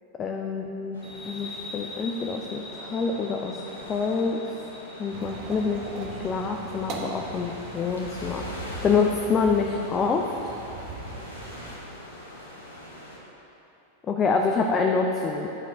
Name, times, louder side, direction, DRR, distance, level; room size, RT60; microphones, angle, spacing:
voice 1, 0.2-1.0 1.2-3.6 3.9-4.4 5.0-10.5 14.1-15.5, left 4 dB, 25° left, 2 dB, 0.5 m, -26 dB
sound 1, 0.9-13.2, left 1 dB, 80° left, 1.4 m, -43 dB
sound 2, 1.0-8.2, left 2 dB, ahead, 1.4 m, -44 dB
sound 3, 5.1-11.8, right 3 dB, 40° right, 1.0 m, -40 dB
9.6 x 5.3 x 5.0 m, 3.0 s
figure-of-eight pair, 90°, 0 cm